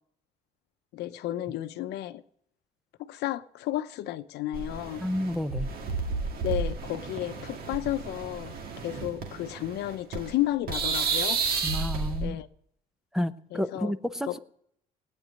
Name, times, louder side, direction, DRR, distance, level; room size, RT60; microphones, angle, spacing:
voice 1, 0.9-2.2 3.1-5.0 6.4-8.6 8.8-11.4 12.2-12.5 13.5-13.9 14.3-14.4, left 14 dB, 80° left, 0.8 m, -32 dB
sound 1, 4.5-10.4 10.7-12.3, right 4 dB, 65° right, 2.0 m, -32 dB
voice 2, 5.0-5.7 11.6-12.4 13.1-14.4, equal, 5° right, 0.7 m, -30 dB
18.0 x 9.3 x 6.5 m
cardioid pair, 110°, 17 cm